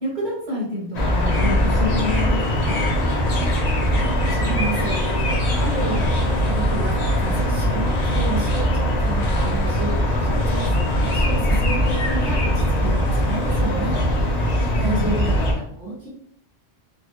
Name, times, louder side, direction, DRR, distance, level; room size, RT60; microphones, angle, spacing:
voice 1, 0.0-2.8 14.8-15.1, left 2 dB, 40° right, -5 dB, 1.5 m, -28 dB
sound 1, 0.9-15.5, equal, 40° left, 0.7 m, -21 dB
voice 2, 3.7-5.0 5.5-10.0 10.3-14.0 14.7-16.1, right 2 dB, 75° right, -10 dB, 1.7 m, -31 dB
3.9 x 2.2 x 3.0 m, 0.67 s
omnidirectional pair, 1.3 m